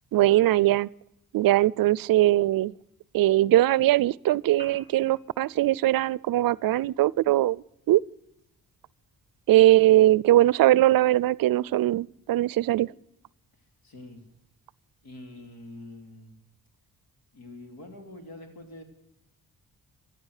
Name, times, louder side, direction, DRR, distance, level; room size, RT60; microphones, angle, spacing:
voice 1, 0.1-0.9 1.3-2.7 3.1-8.0 9.5-12.9, right 15 dB, 75° right, 0.5 m, -21 dB
Piano, 4.5-12.5, equal, 30° left, 5.6 m, -59 dB
voice 2, 13.8-14.2 15.0-16.3 17.3-18.8, left 2 dB, 80° left, 3.2 m, -45 dB
15.5 x 12.0 x 6.5 m
cardioid pair, 70°, 35 cm